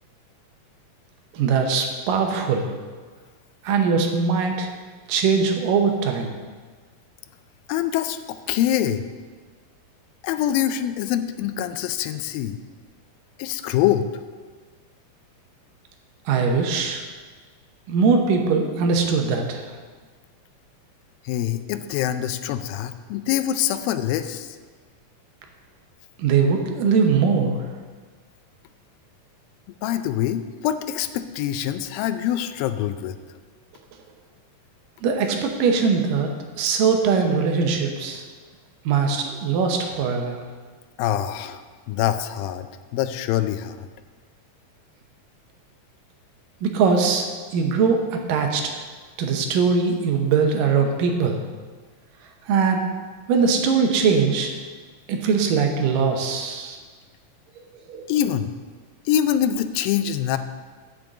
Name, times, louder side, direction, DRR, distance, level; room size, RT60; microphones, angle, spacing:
voice 1, 1.3-2.7 3.6-4.7 5.1-6.3 16.3-17.0 17.9-19.6 26.2-27.6 35.0-38.2 38.9-40.4 46.6-47.3 47.5-48.8 49.2-51.4 52.5-52.9 53.3-54.5 55.1-56.8 57.9-58.1, right 5 dB, 75° right, 3 dB, 2.5 m, -21 dB
voice 2, 7.7-9.0 10.2-12.6 13.4-14.1 21.3-24.5 29.8-33.2 41.0-41.6 41.9-42.7 42.9-43.8 58.1-58.5 59.1-60.4, left 11 dB, 90° left, 10 dB, 2.4 m, -24 dB
7.0 x 6.2 x 7.8 m, 1.5 s
omnidirectional pair, 4.0 m